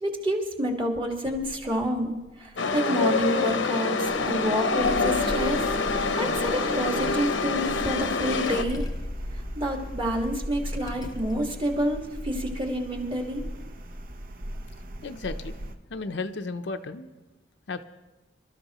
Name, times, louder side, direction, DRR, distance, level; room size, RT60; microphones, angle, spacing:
voice 1, 0.0-5.6 6.0-8.8 9.6-13.5, equal, 30° right, 1 dB, 1.7 m, -28 dB
sound 1, 1.2-2.8 3.2-3.3 3.9-7.8 8.1-11.6, left 1 dB, 20° left, 0.6 m, -39 dB
Chatter / Subway metro underground, 2.6-8.6, left 4 dB, 90° left, 0.9 m, -26 dB
sound 2, 4.8-15.7, right 1 dB, 50° right, 0.8 m, -39 dB
voice 2, 15.0-15.6 15.9-17.1 17.7-17.8, left 3 dB, 65° left, 8 dB, 0.6 m, -34 dB
25.5 x 13.0 x 3.0 m, 1.1 s
head